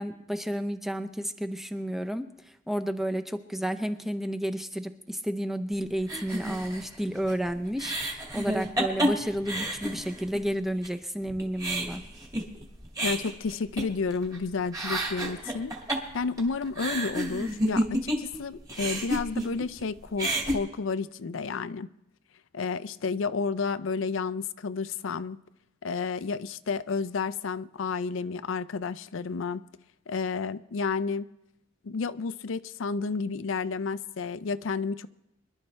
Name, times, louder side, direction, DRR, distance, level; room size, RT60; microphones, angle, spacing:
voice 1, 0.0-12.0, equal, ahead, 7 dB, 0.6 m, -31 dB
sound 1, 6.1-10.5 10.8-10.9 11.3-14.4 14.6-18.4 18.7-19.8 20.1-20.6, right 1 dB, 20° right, 2.0 m, -30 dB
voice 2, 13.0-15.8 16.1-21.9 22.5-25.4 25.8-29.6 30.1-31.3 31.8-35.1, left 4 dB, 90° left, 12 dB, 0.5 m, -31 dB
24.5 x 11.5 x 3.3 m, 0.86 s
head